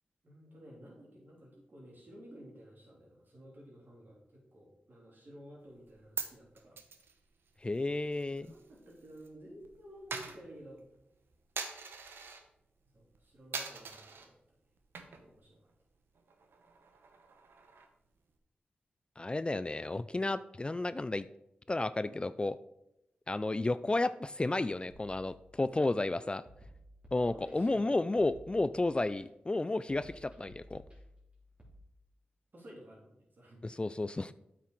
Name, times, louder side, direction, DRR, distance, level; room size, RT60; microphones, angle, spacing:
voice 1, 0.2-6.8 8.3-10.8 12.9-14.4 15.0-15.6 22.0-22.3 25.8-26.1 27.3-27.9 32.5-33.6, equal, 60° right, -3 dB, 3.6 m, -53 dB
Coin (dropping), 5.7-9.3 9.5-12.5 12.9-13.2 13.5-14.3 14.8-15.4 15.7-15.8 16.1-18.1, right 5 dB, 80° right, 0.9 m, -44 dB
voice 2, 7.6-8.5 19.2-21.3 21.7-22.6 23.3-26.4 27.1-30.8 33.6-34.3, left 2 dB, 25° left, 15 dB, 0.3 m, -32 dB
sound 1, 24.9-25.8 26.5-27.8 28.2-29.2 29.9-31.8, equal, 30° right, 3.1 m, -56 dB
8.2 x 6.0 x 4.7 m, 0.82 s
cardioid pair, 45°, 4 cm